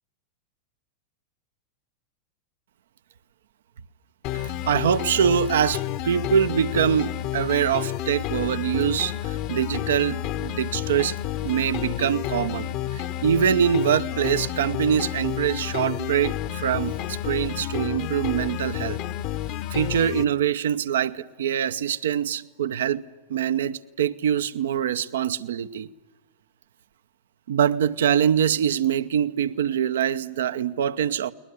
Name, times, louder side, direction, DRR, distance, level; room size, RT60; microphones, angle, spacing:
sound 1, 4.2-20.2, left 12 dB, 50° left, 1.0 m, -30 dB
voice 1, 4.3-11.2 11.4-19.0 19.7-23.0 23.3-25.9 27.5-31.3, right 8 dB, 80° right, 0.8 m, -24 dB
22.0 x 20.0 x 9.6 m
hypercardioid pair, 115°, 0 cm